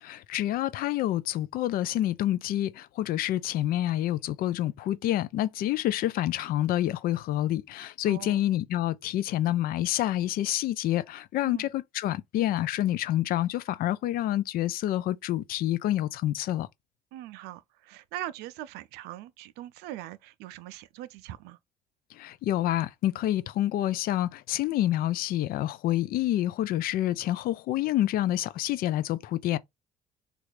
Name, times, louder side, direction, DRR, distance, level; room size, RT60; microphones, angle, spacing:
voice 1, 0.0-16.7 22.1-29.6, left 13 dB, 60° left, 0.4 m, -28 dB
voice 2, 8.1-8.4 11.4-11.7 17.1-21.6, right 14 dB, 75° right, 0.4 m, -41 dB
3.3 x 2.4 x 3.2 m
hypercardioid pair, 65°, 17 cm